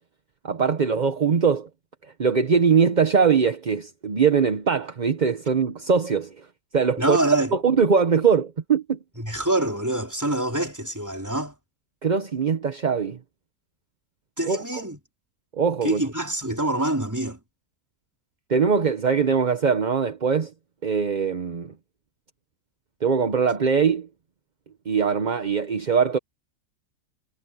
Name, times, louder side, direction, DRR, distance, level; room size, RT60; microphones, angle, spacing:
voice 1, 0.4-1.7 2.2-6.5 6.7-7.2 7.5-9.0 12.0-13.2 14.5-14.6 15.5-16.0 18.5-20.5 20.8-21.7 23.0-24.1 24.9-26.2, right 6 dB, 35° right, 0.9 m, -21 dB
voice 2, 7.0-7.5 9.2-11.6 14.4-15.0 15.8-17.4, right 1 dB, 10° right, 3.5 m, -25 dB
omnidirectional pair, 1.7 m